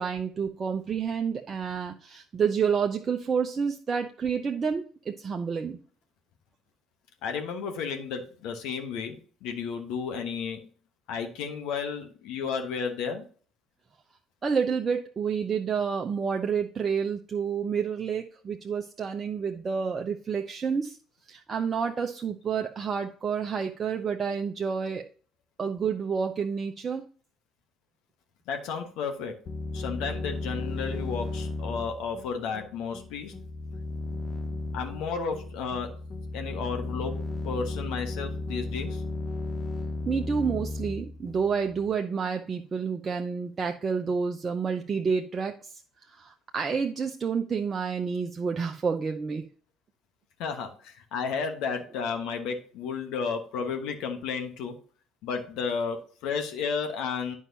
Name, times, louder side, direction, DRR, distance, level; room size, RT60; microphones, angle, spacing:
voice 1, 0.0-5.8 14.4-21.0 21.3-25.0 25.6-27.1 40.1-45.8 46.1-49.5, right 6 dB, 35° right, 4 dB, 0.6 m, -29 dB
voice 2, 7.2-10.7 11.1-13.2 28.5-29.4 29.7-33.3 34.7-35.9 36.3-39.0 50.4-54.8 55.2-57.4, left 5 dB, 60° left, 4 dB, 1.2 m, -33 dB
sound 1, 29.5-41.9, left 2 dB, 40° left, 1.1 m, -35 dB
9.6 x 5.6 x 2.7 m, 0.41 s
figure-of-eight pair, 55°, 0 cm